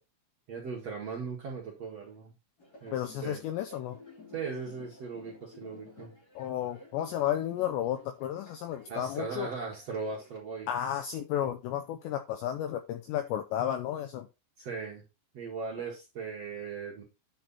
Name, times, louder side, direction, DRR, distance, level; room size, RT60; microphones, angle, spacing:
voice 1, 0.5-2.3 2.8-2.9 3.2-3.4 4.3-6.1 8.9-10.7 14.6-15.0 15.3-17.0, right 5 dB, 60° right, 1.7 m, -38 dB
sound 1, 2.6-10.4, left 3 dB, 35° left, 1.6 m, -54 dB
voice 2, 2.9-4.0 6.4-9.5 10.7-14.3, left 11 dB, 85° left, 2.5 m, -32 dB
9.5 x 4.4 x 4.1 m
omnidirectional pair, 5.8 m